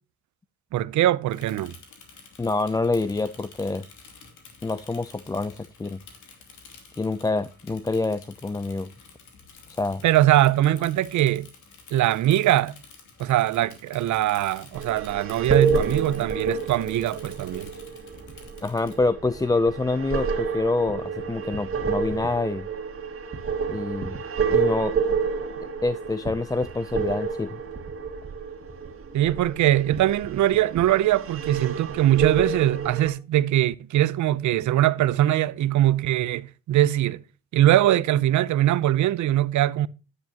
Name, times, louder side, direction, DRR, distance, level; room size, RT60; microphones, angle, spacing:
voice 1, 0.7-1.7 10.0-11.5 11.9-12.7 13.2-17.7 29.1-37.2 37.5-39.9, right 13 dB, 70° right, 0.6 m, -22 dB
Bicycle / Mechanisms, 1.3-19.0, left 5 dB, 75° left, 2.8 m, -50 dB
voice 2, 2.4-3.8 4.6-6.0 7.0-8.9 9.8-10.0 18.6-22.7 23.7-24.2 24.5-24.9 25.6-27.6, left 3 dB, 10° left, 0.5 m, -26 dB
sound 1, 14.7-33.1, right 5 dB, 45° right, 2.0 m, -29 dB
10.0 x 9.4 x 2.9 m
cardioid pair, 90°, 30 cm